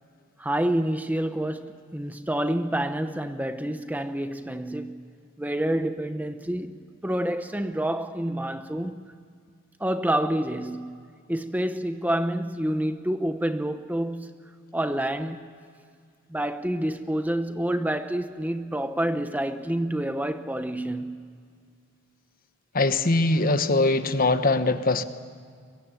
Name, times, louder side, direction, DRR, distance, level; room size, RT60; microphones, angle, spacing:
voice 1, 0.4-5.0 5.4-6.8 7.0-9.0 9.8-11.0 11.3-14.3 14.7-15.5 16.3-21.2, right 1 dB, 10° right, 0.9 m, -28 dB
voice 2, 22.7-25.0, left 2 dB, 45° left, 1.2 m, -22 dB
23.5 x 22.0 x 9.1 m
head